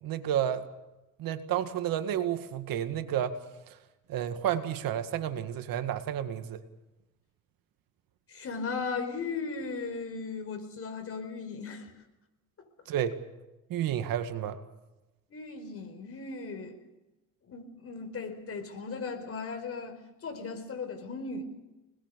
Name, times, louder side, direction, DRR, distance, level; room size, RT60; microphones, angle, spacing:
voice 1, 0.0-0.7 1.2-3.4 3.7-3.8 4.1-6.6 12.9-13.2 13.7-14.6, right 10 dB, 75° right, 9 dB, 2.0 m, -31 dB
voice 2, 8.3-11.9 15.3-16.8 17.4-21.4, left 4 dB, 40° left, 6 dB, 4.7 m, -37 dB
26.0 x 20.5 x 6.9 m, 1.0 s
cardioid pair, 115°, 35 cm